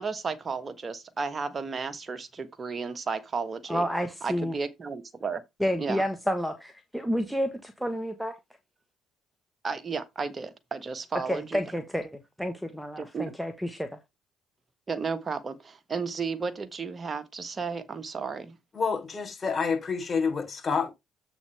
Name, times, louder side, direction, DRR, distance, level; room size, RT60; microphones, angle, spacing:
voice 1, 0.0-3.8 4.2-5.4 5.8-6.0 9.6-11.6 13.0-13.3 14.9-18.6, right 5 dB, 35° right, 1.4 m, -33 dB
voice 2, 3.7-4.5 5.6-8.3 11.3-13.9, equal, ahead, 1.4 m, -30 dB
voice 3, 18.7-20.9, left 5 dB, 35° left, 3.7 m, -28 dB
8.2 x 6.1 x 3.5 m
supercardioid pair, 65°, 0 cm